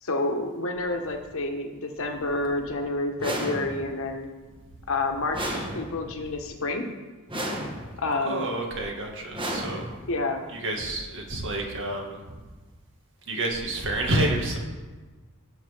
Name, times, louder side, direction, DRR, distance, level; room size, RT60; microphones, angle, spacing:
voice 1, 0.0-4.3 4.9-6.9 8.0-8.5 10.1-10.4, left 2 dB, 65° left, 4 dB, 1.4 m, -29 dB
sound 1, 3.2-4.1 5.3-6.2 7.3-8.1 9.3-10.2, right 1 dB, 25° right, 1.5 m, -33 dB
voice 2, 8.2-9.9 10.5-12.4 13.3-14.6, right 1 dB, 60° right, 1 dB, 2.0 m, -29 dB
18.0 x 7.1 x 3.6 m, 1.3 s
head